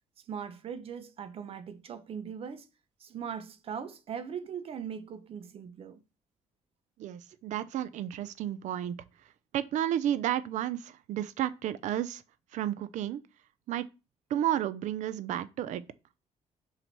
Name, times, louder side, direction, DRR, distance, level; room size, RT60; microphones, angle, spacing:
voice 1, 0.3-2.7 3.0-6.0, right 7 dB, 50° right, 0.9 m, -40 dB
voice 2, 7.0-9.0 9.5-12.2 12.5-13.2 13.7-13.9 14.3-15.8, right 11 dB, 75° right, 0.6 m, -32 dB
5.8 x 3.9 x 4.6 m
cardioid pair, 135°, 13 cm